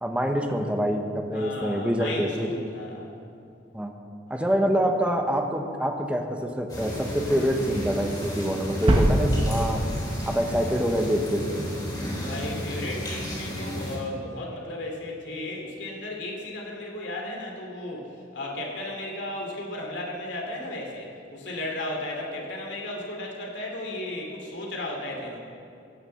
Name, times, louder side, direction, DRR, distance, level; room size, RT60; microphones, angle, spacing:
voice 1, 0.0-2.5 3.7-3.9 4.3-9.8 10.3-11.6, equal, 5° right, 3 dB, 1.0 m, -26 dB
voice 2, 1.3-3.1 4.3-4.5 12.2-25.4, left 1 dB, 70° left, -1 dB, 2.8 m, -35 dB
sound 1, 6.7-14.0, equal, 25° left, 3.5 m, -33 dB
sound 2, 8.9-10.9, equal, 30° right, 1.1 m, -24 dB
16.0 x 6.8 x 7.9 m, 2.5 s
head